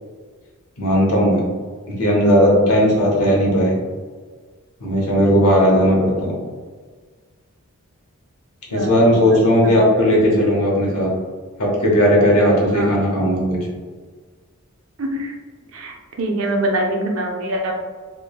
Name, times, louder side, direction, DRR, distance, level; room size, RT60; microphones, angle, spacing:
voice 1, 0.8-1.4 1.9-3.7 4.8-6.3 8.7-11.1 11.6-13.6, equal, 85° left, -3 dB, 0.8 m, -16 dB
voice 2, 8.7-10.0 12.7-12.9 15.0-15.4 15.7-17.7, right 1 dB, 65° right, 1 dB, 0.5 m, -25 dB
3.1 x 2.2 x 2.3 m, 1.5 s
head